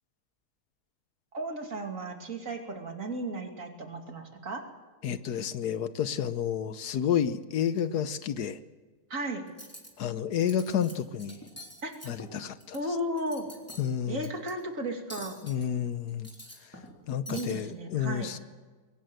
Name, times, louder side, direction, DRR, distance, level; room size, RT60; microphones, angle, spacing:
voice 1, 1.3-4.6 9.1-9.5 11.8-11.9 12.7-13.4 14.1-15.4 17.3-18.3, right 1 dB, 55° right, 3 dB, 3.1 m, -34 dB
voice 2, 5.0-8.6 10.0-11.4 12.1-12.8 13.8-14.3 15.4-16.3 16.6-16.7 17.1-18.4, left 8 dB, 75° left, 12 dB, 1.4 m, -30 dB
Cutlery silverware, 9.5-9.9 10.3-10.9 11.2-12.8 13.1-13.9 14.2-14.5 15.1-15.7 16.1-17.0 17.3-17.5, equal, 10° left, 3.5 m, -45 dB
22.0 x 18.5 x 7.8 m, 1.3 s
omnidirectional pair, 1.7 m